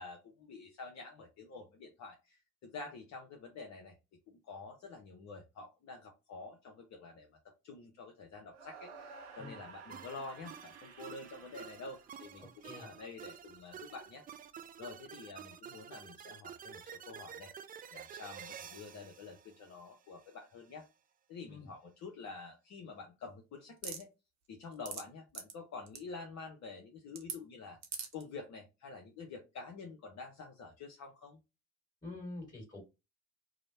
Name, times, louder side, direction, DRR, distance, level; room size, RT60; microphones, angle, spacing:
voice 1, 0.0-4.0 4.3-7.4 7.6-14.2 14.8-17.5 17.9-20.9 21.3-24.1 24.5-27.8 28.1-31.4, left 4 dB, 50° left, 3 dB, 0.7 m, -48 dB
sound 1, 8.5-12.7, right 5 dB, 80° right, 0.7 m, -53 dB
sound 2, 9.9-20.3, right 8 dB, 25° right, 0.3 m, -50 dB
sound 3, 23.8-24.0 24.6-25.0 25.3-25.5 25.9-26.0 27.2-27.4 27.8-28.2, right 7 dB, 50° right, 0.8 m, -40 dB
voice 2, 32.0-32.8, left 2 dB, 10° left, 0 dB, 1.7 m, -46 dB
2.9 x 2.0 x 2.7 m, 0.26 s
hypercardioid pair, 50°, 35 cm